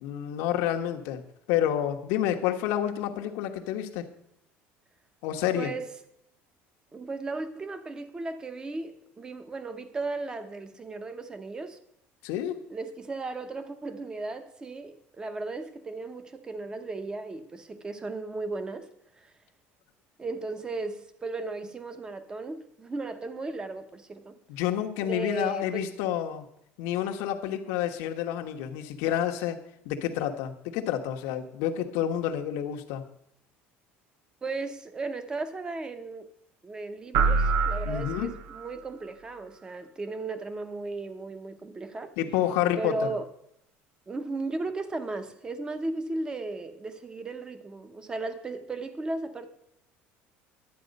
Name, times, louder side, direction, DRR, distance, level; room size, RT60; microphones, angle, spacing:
voice 1, 0.0-1.2 1.5-4.1 5.2-5.7 12.2-12.6 24.5-26.4 26.8-29.6 29.8-33.0 37.8-38.3 42.2-42.9, left 11 dB, 80° left, 1.2 m, -29 dB
voice 2, 5.5-5.9 6.9-11.8 12.7-18.9 19.1-19.3 20.2-24.4 25.0-25.9 34.4-36.3 36.6-42.1 42.8-43.3 44.1-49.5, right 3 dB, 15° right, 0.9 m, -35 dB
sound 1, 37.1-38.7, right 4 dB, 65° right, 0.9 m, -26 dB
12.0 x 8.8 x 5.3 m
cardioid pair, 155°, 5 cm